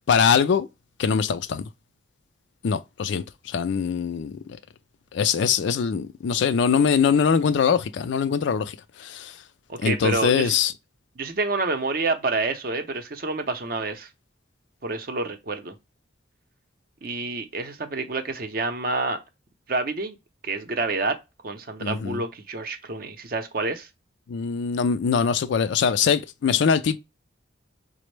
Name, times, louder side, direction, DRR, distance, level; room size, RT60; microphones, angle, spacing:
voice 1, 0.1-0.7 1.0-1.7 2.6-4.4 5.1-9.3 9.8-10.7 21.8-22.2 24.3-27.0, left 6 dB, 65° left, 0.3 m, -22 dB
voice 2, 9.7-10.5 11.2-14.1 14.8-15.7 17.0-19.2 19.7-20.2 20.4-21.2 21.4-23.9, right 3 dB, 45° right, 0.6 m, -28 dB
5.1 x 2.0 x 3.1 m
head